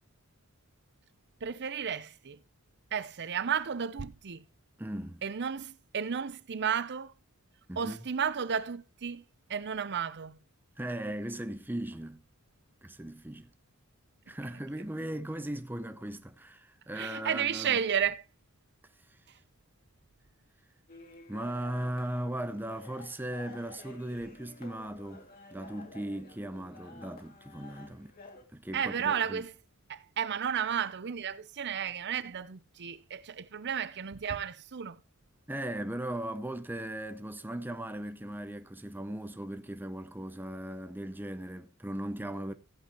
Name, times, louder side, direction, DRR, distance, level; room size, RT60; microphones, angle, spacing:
voice 1, 1.4-2.4 2.9-4.4 5.2-7.1 7.8-9.2 9.5-10.4 16.9-18.2 28.7-29.5 29.9-35.0, right 7 dB, 55° right, 0.6 m, -33 dB
voice 2, 4.8-5.2 7.7-8.0 10.8-12.2 12.8-13.5 14.3-17.8 21.3-28.1 28.5-29.4 35.5-42.5, right 1 dB, 10° right, 0.7 m, -38 dB
sound 1, 20.9-28.4, left 2 dB, 45° left, 2.5 m, -51 dB
16.5 x 8.4 x 3.0 m
head